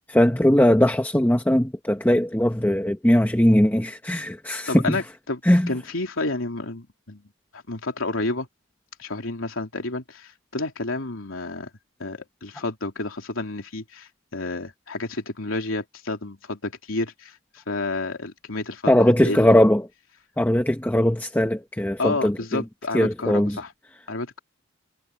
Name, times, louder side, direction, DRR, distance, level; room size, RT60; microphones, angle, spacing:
voice 1, 0.1-5.0 5.5-5.7 18.9-19.8 20.4-22.6 22.9-23.6, left 1 dB, 10° left, 1.0 m, -20 dB
voice 2, 4.7-5.4 5.7-7.2 7.5-8.5 9.0-11.7 12.0-19.6 22.0-23.7 24.1-24.4, left 2 dB, 90° left, 3.2 m, -30 dB
head